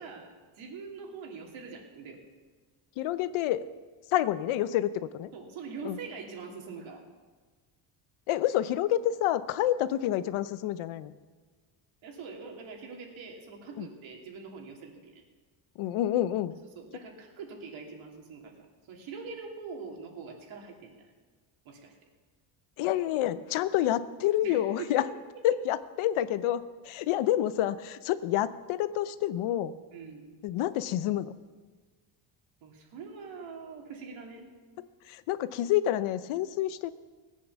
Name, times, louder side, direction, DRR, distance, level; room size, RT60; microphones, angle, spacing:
voice 1, 0.0-2.2 5.3-7.0 12.0-15.2 16.7-18.5 18.9-21.1 21.6-21.9 24.4-25.1 29.9-30.3 32.6-34.5, right 5 dB, 70° right, 1 dB, 2.9 m, -43 dB
voice 2, 3.0-3.6 4.1-5.3 5.8-6.0 8.3-11.1 13.8-13.9 15.8-16.5 22.8-25.0 25.4-29.7 30.4-31.3 35.1-36.9, left 12 dB, 80° left, 14 dB, 0.8 m, -28 dB
18.0 x 8.6 x 7.0 m, 1.4 s
cardioid pair, 150°, 48 cm